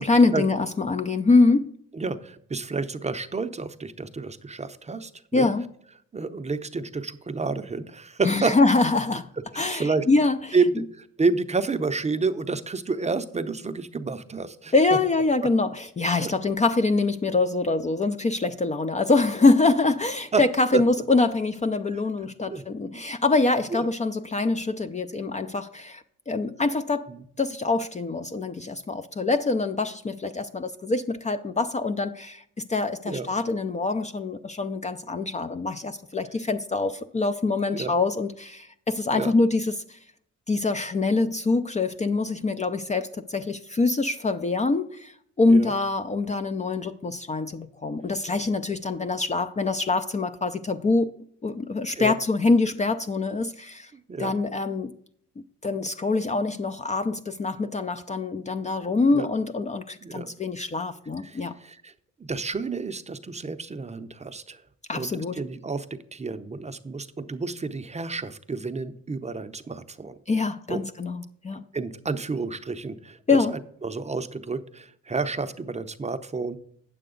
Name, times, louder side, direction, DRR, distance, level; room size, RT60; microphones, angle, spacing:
voice 1, 0.0-1.7 5.3-5.7 8.2-9.3 9.6-10.4 14.7-27.1 27.4-40.0 40.5-51.1 51.4-53.9 54.2-54.9 55.6-61.6 64.9-65.4 70.3-71.6 73.3-73.6, left 3 dB, 25° left, 0.4 m, -24 dB
voice 2, 1.9-5.5 6.1-8.6 9.5-10.1 10.5-14.7 16.2-16.3 20.3-20.4 20.7-20.8 21.9-22.0 22.5-22.6 22.9-23.0 23.7-23.9 27.1-27.2 33.0-33.3 37.7-37.9 39.1-39.3 45.5-45.7 52.0-52.2 53.9-54.3 59.1-59.3 60.0-60.3 61.2-61.9 62.2-64.6 64.9-70.2 70.7-70.8 71.7-76.6, right 4 dB, 20° right, 0.6 m, -30 dB
9.1 x 7.8 x 3.8 m
cardioid pair, 90°, 30 cm